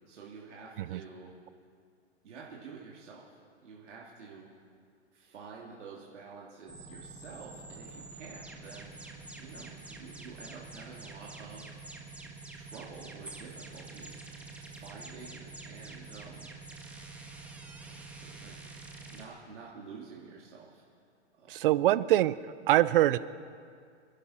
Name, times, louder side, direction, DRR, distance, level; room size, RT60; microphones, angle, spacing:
voice 1, 0.1-1.3 2.2-3.2 3.6-4.5 5.1-8.9 9.4-11.8 12.5-14.1 14.6-16.5 17.8-17.9 18.2-18.6 19.1-20.8 21.4-21.5, right 5 dB, 85° right, -4 dB, 2.7 m, -49 dB
sound 1, 6.7-19.2, right 3 dB, 5° right, 1.4 m, -47 dB
voice 2, 21.5-22.4 22.7-23.2, right 14 dB, 50° right, 17 dB, 0.6 m, -24 dB
27.5 x 11.0 x 4.3 m, 2.2 s
hypercardioid pair, 145°, 35 cm